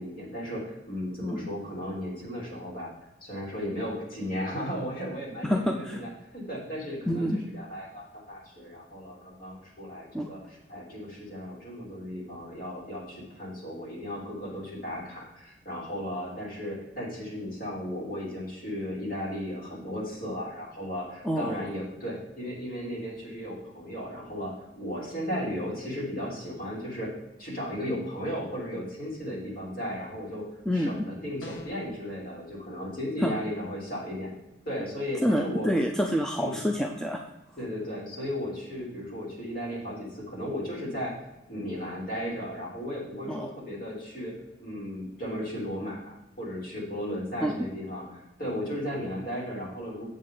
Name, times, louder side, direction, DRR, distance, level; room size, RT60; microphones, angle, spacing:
voice 1, 0.0-2.9 3.2-6.1 6.3-27.1 27.4-30.4 30.7-34.3 34.6-35.7 36.4-36.6 37.6-41.1 41.5-44.3 44.6-50.1, equal, 50° left, -6 dB, 3.3 m, -35 dB
voice 2, 5.4-6.0 7.1-7.4 10.1-10.3 21.2-21.6 30.7-31.0 33.2-33.3 35.2-37.2 43.3-43.5 47.4-47.7, equal, 5° left, 2 dB, 0.4 m, -27 dB
sound 1, 31.4-31.9, left 2 dB, 85° left, 1.2 m, -43 dB
7.9 x 7.4 x 3.9 m, 0.94 s
head